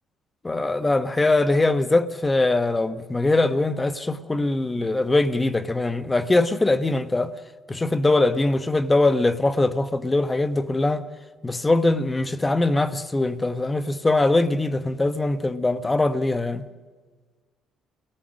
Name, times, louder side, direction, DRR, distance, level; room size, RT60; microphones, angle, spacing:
voice 1, 0.4-7.3 7.7-11.0 11.4-16.7, left 2 dB, 20° left, 1.0 m, -22 dB
29.0 x 17.5 x 6.4 m
supercardioid pair, 85°, 0 cm